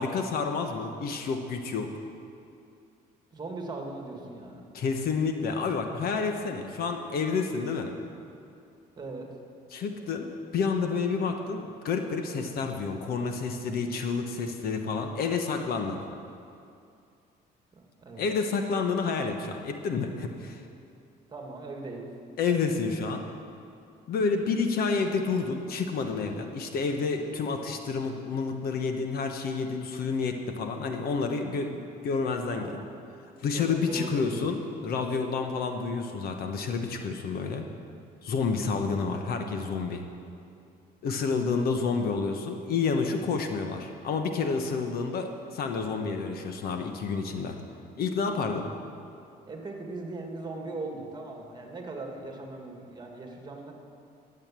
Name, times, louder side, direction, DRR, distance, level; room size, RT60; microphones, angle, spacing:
voice 1, 0.0-1.9 4.7-7.9 9.7-16.0 18.2-20.6 22.4-23.2 24.1-32.8 33.4-37.7 38.2-40.0 41.0-47.5 48.0-48.7, left 4 dB, 65° left, 5 dB, 1.2 m, -29 dB
voice 2, 3.3-4.7 9.0-9.4 17.7-18.3 21.3-22.1 28.0-28.2 31.6-31.8 32.6-32.9 33.5-34.5 49.5-53.7, right 2 dB, 25° right, 1 dB, 2.0 m, -39 dB
12.5 x 8.3 x 7.5 m, 2.5 s
cardioid pair, 110°, 17 cm